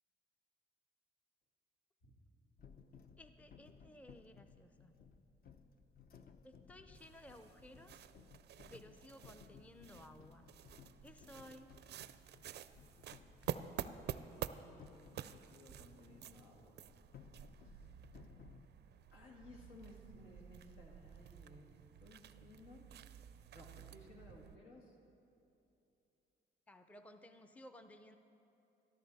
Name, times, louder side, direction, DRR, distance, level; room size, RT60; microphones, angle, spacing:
sound 1, 2.6-15.6 16.0-18.7, left 6 dB, 50° left, 0.7 m, -61 dB
voice 1, 3.2-4.9 6.4-8.0 8.7-10.5 11.0-11.7 26.7-28.2, left 1 dB, 5° left, 8 dB, 0.5 m, -57 dB
sound 2, 6.9-24.6, right 10 dB, 60° right, 0.4 m, -50 dB
voice 2, 13.8-16.8 17.6-17.9 19.1-21.6 22.0-22.9 23.5-25.0, left 2 dB, 85° left, -1 dB, 2.1 m, -59 dB
13.5 x 12.5 x 4.1 m, 2.8 s
cardioid pair, 90°, 20 cm